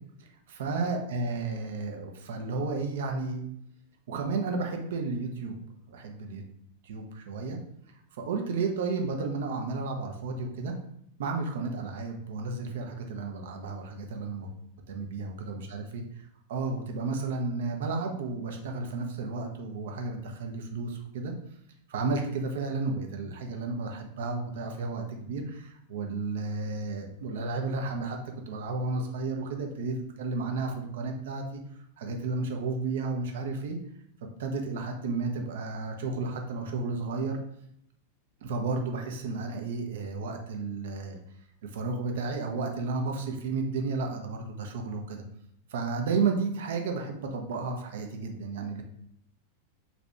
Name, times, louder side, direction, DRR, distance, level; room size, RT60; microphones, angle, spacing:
voice 1, 0.2-3.4 4.1-5.6 5.9-6.4 6.8-7.6 8.1-10.8 11.2-14.5 14.9-16.0 16.5-21.3 21.9-28.2 28.5-31.6 32.0-33.8 34.4-37.4 38.4-41.2 41.6-45.2 45.7-48.8, right 3 dB, 55° right, 3 dB, 0.5 m, -32 dB
2.7 x 2.5 x 3.3 m, 0.73 s
figure-of-eight pair, 90°, 0 cm